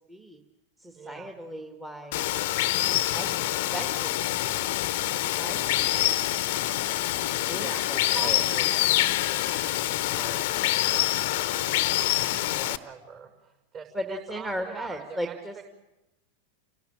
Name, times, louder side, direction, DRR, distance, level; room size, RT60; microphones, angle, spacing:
voice 1, 0.1-0.4 0.8-2.5 3.1-3.4 3.7-4.1 4.4-4.6 5.4-6.2 7.5-8.4 13.9-15.7, equal, 10° right, 3 dB, 1.7 m, -37 dB
voice 2, 0.9-1.3 7.5-8.9 9.2-12.1 12.4-15.3, right 6 dB, 35° right, 4 dB, 6.1 m, -44 dB
Water, 2.1-12.8, left 15 dB, 50° left, 0.9 m, -26 dB
29.0 x 17.5 x 8.7 m, 1.0 s
figure-of-eight pair, 90°, 0 cm